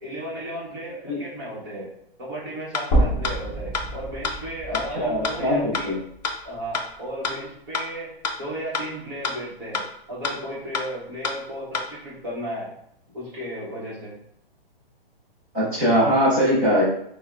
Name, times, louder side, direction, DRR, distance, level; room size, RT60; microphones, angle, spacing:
voice 1, 0.0-1.9 2.2-6.0 6.4-12.7 13.1-14.2, right 1 dB, 25° right, -5 dB, 1.0 m, -34 dB
sound 1, 2.7-2.8 3.2-3.3 3.7-3.8 4.2-4.3 4.7-4.8 5.2-5.3 5.7-5.8 6.2-6.3 6.7-6.8 7.2-7.3 7.7-7.8 8.2-8.3 8.7-8.8 9.2-9.3 9.7-9.8 10.2-10.3 10.7-10.8 11.2-11.3 11.7-11.8, left 5 dB, 45° left, 0.5 m, -26 dB
sound 2, 2.9-7.1 7.4-7.5 8.9-9.0, right 1 dB, 15° left, 1.0 m, -28 dB
voice 2, 5.0-6.0 15.5-16.8, equal, 10° right, -16 dB, 0.4 m, -21 dB
6.1 x 2.1 x 2.4 m, 0.73 s
hypercardioid pair, 170°, 30 cm